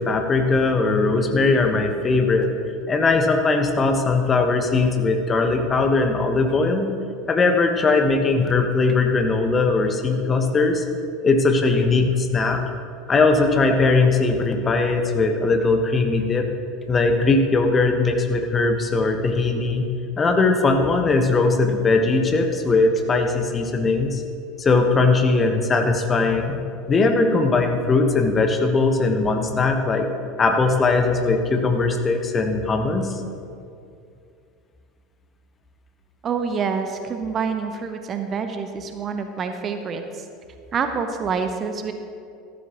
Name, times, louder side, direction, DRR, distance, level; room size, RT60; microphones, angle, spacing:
voice 1, 0.0-2.5 2.9-6.9 7.3-10.8 11.2-12.6 13.1-16.5 16.9-19.9 20.2-24.2 24.6-30.1 30.4-33.2, left 3 dB, 25° left, 5 dB, 1.2 m, -20 dB
voice 2, 36.2-40.2 40.7-41.9, right 5 dB, 30° right, 7 dB, 0.8 m, -27 dB
14.0 x 13.0 x 3.0 m, 2.4 s
figure-of-eight pair, 75°, 0 cm